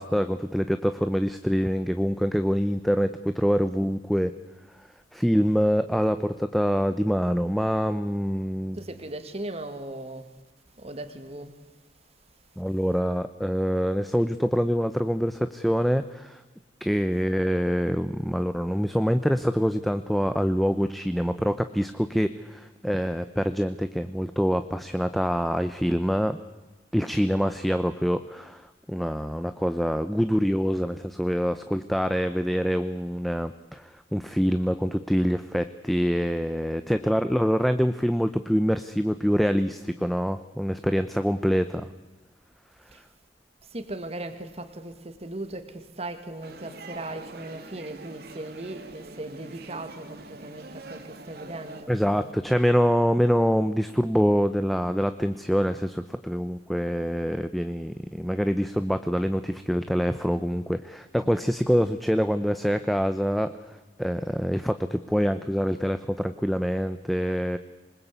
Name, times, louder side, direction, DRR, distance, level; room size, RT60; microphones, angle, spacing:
voice 1, 0.0-4.3 5.1-8.8 12.6-16.4 16.8-26.4 26.9-41.9 51.9-63.5 64.0-67.6, equal, ahead, 0.8 m, -25 dB
voice 2, 8.7-10.3 10.8-11.6 39.8-39.9 42.9-43.0 43.6-52.3 61.2-61.4, right 2 dB, 35° right, 2.0 m, -38 dB
sound 1, 46.4-51.8, right 2 dB, 55° right, 2.3 m, -44 dB
26.5 x 20.0 x 8.3 m
head